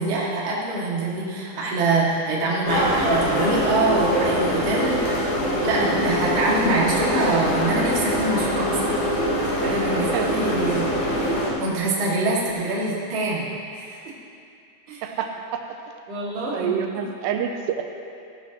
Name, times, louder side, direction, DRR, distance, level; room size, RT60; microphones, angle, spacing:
voice 1, 0.0-5.1 5.6-8.8 9.6-10.9 11.6-14.0 14.9-15.0 16.1-16.7 17.0-17.1, right 2 dB, 40° right, -7 dB, 2.1 m, -24 dB
sound 1, 2.7-11.5, equal, 70° left, 3.8 m, -23 dB
voice 2, 9.6-10.3 15.0-15.6 16.5-17.8, right 8 dB, 85° right, 4 dB, 2.6 m, -28 dB
16.0 x 12.0 x 3.0 m, 2.5 s
omnidirectional pair, 5.1 m